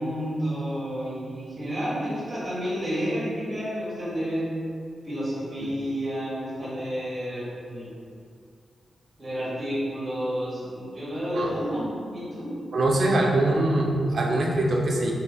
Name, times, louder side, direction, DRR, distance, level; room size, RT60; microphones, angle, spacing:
voice 1, 0.0-4.5 5.0-7.9 9.2-12.5, equal, 20° right, -8 dB, 1.3 m, -30 dB
voice 2, 12.7-15.1, right 1 dB, 50° right, -1 dB, 0.6 m, -23 dB
5.0 x 4.1 x 2.3 m, 2.3 s
wide cardioid pair, 180°, 0 cm